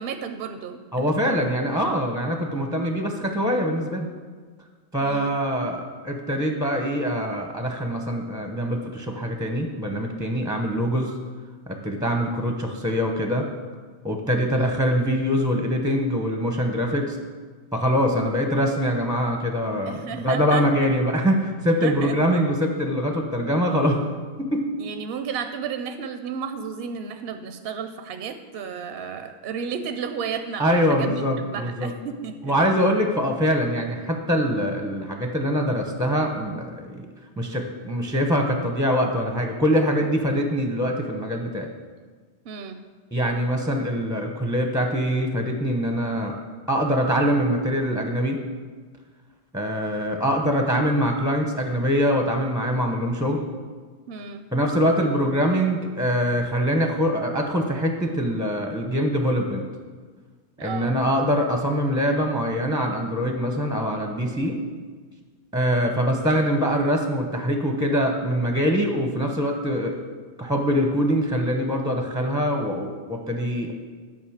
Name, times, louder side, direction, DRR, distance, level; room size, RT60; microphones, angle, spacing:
voice 1, 0.0-1.1 5.0-5.4 14.5-14.8 19.8-20.7 21.8-22.2 24.8-32.6 42.5-42.8 54.1-54.5 60.6-61.0, right 6 dB, 60° right, 8 dB, 0.7 m, -33 dB
voice 2, 0.9-4.1 4.9-11.1 11.7-13.5 14.0-17.2 17.7-24.0 24.4-24.6 30.6-31.9 32.4-37.1 37.4-41.7 43.1-46.4 46.7-48.4 49.5-53.4 54.5-59.6 60.6-64.6 65.5-70.0 70.4-73.7, equal, 5° right, 3 dB, 0.5 m, -23 dB
9.6 x 5.3 x 7.2 m, 1.5 s
omnidirectional pair, 1.3 m